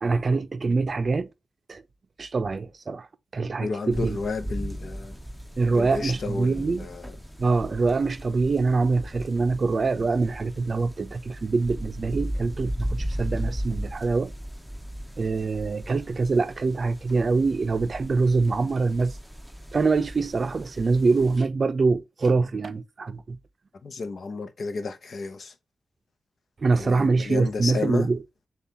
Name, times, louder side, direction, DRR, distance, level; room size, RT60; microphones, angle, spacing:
voice 1, 0.0-1.3 1.7-1.8 2.2-3.1 3.3-4.2 5.6-6.9 7.4-14.3 15.2-19.1 19.7-23.4 26.6-28.2, right 4 dB, 55° right, 0.5 m, -24 dB
voice 2, 3.6-5.2 5.7-7.2 23.8-25.6 26.7-28.1, left 4 dB, 70° left, 0.6 m, -32 dB
sound 1, 3.9-21.4, equal, 5° left, 0.7 m, -37 dB
6.8 x 2.3 x 2.7 m
cardioid pair, 55°, 0 cm